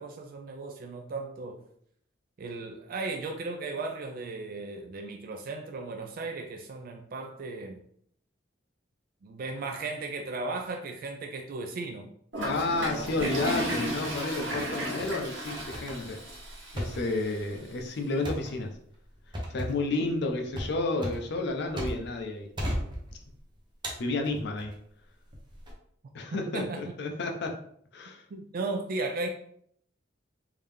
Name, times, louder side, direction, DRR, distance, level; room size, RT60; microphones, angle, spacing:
voice 1, 0.0-1.6 2.4-7.8 9.2-12.1 12.8-13.1 26.3-26.9 28.3-29.3, right 3 dB, 50° right, 0.4 m, -36 dB
Toilet flush, 12.3-17.4, equal, 75° right, 1.3 m, -34 dB
voice 2, 12.4-16.2 16.7-18.8 19.5-22.5 24.0-24.7 26.1-27.6 27.9-28.2, left 2 dB, 65° left, 0.5 m, -31 dB
sound 1, 13.1-13.7 14.1-14.7 15.0-15.2 15.7-22.2 22.6-23.4 23.8-24.8 25.3-25.7, equal, 25° right, 0.8 m, -37 dB
3.6 x 2.8 x 3.3 m
head